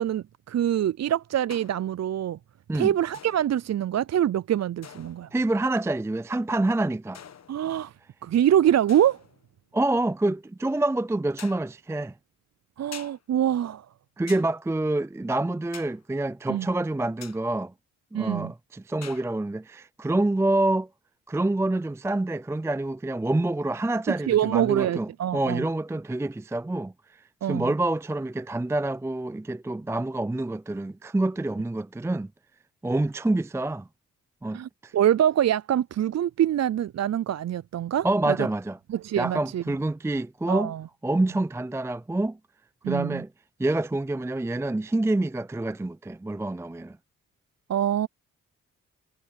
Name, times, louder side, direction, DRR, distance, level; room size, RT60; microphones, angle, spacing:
voice 1, 0.0-2.4 2.7-5.3 7.5-7.9 8.2-9.2 12.8-13.9 16.5-16.7 18.1-18.5 24.3-25.6 27.4-27.7 34.5-38.5 38.9-39.6 40.5-40.8 42.8-43.2 47.7-48.1, right 11 dB, 55° right, 0.6 m, -25 dB
sound 1, 1.5-2.0 3.1-3.7 4.8-5.4 7.1-7.9 8.9-9.5 11.4-11.7 12.9-13.2 14.3-14.5 15.7-16.0 17.2-17.4 19.0-19.3, left 7 dB, 55° left, 1.3 m, -46 dB
voice 2, 5.3-7.2 9.7-12.1 14.2-17.7 18.1-20.9 21.3-26.9 27.5-32.3 32.8-33.9 34.4-34.9 38.0-38.8 39.2-40.7 41.0-42.4 42.9-43.3 43.6-47.0, right 2 dB, 10° right, 0.5 m, -27 dB
supercardioid pair, 45°, 32 cm